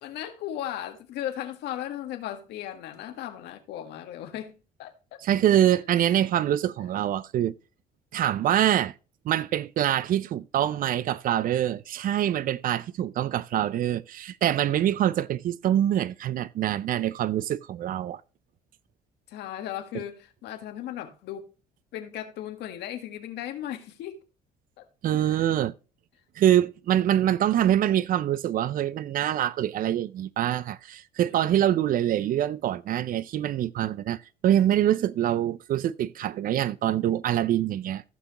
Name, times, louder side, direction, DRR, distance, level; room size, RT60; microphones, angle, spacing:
voice 1, 0.0-5.2 5.7-5.8 19.3-21.5 21.9-24.2 24.8-24.9 25.1-25.5 31.2-31.4, left 11 dB, 80° left, 1.6 m, -37 dB
voice 2, 5.2-7.5 8.1-8.9 9.2-18.2 25.0-25.7 26.4-38.0, right 11 dB, 55° right, 0.6 m, -25 dB
15.5 x 5.8 x 3.0 m
cardioid pair, 110°, 17 cm